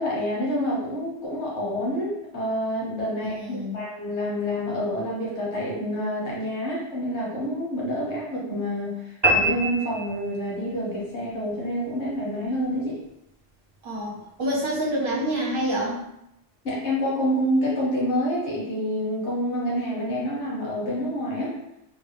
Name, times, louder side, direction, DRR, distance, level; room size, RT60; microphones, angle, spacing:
voice 1, 0.0-13.0 16.6-21.5, equal, 70° left, -5 dB, 1.4 m, -28 dB
voice 2, 3.1-3.8 13.8-16.1, right 1 dB, 55° right, -4 dB, 1.0 m, -27 dB
sound 1, 9.2-10.8, right 1 dB, 35° right, 0.4 m, -24 dB
3.9 x 2.1 x 3.3 m, 0.82 s
omnidirectional pair, 1.2 m